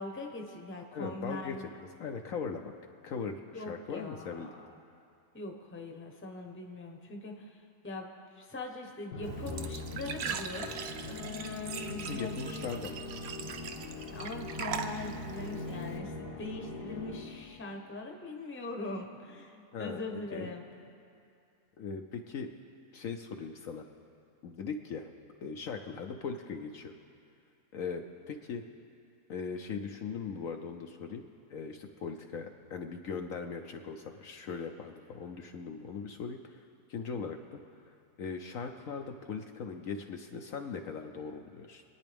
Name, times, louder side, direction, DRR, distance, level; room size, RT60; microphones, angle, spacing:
voice 1, 0.0-1.7 3.5-4.7 5.3-8.1 8.4-12.7 14.1-20.6, left 2 dB, 10° left, 2 dB, 0.8 m, -42 dB
voice 2, 0.9-2.7 3.0-4.5 11.9-12.9 19.7-20.5 21.8-22.5 22.9-23.8 24.4-25.1 25.4-26.9 27.7-28.6 29.3-37.6 38.2-41.8, left 5 dB, 65° left, 4 dB, 1.0 m, -39 dB
Musical instrument, 9.1-17.6, left 3 dB, 90° left, 2.1 m, -42 dB
Glass / Trickle dribble / Fill (with liquid), 9.2-16.0, right 6 dB, 60° right, 0.7 m, -41 dB
27.5 x 9.5 x 3.5 m, 2.5 s
omnidirectional pair, 1.7 m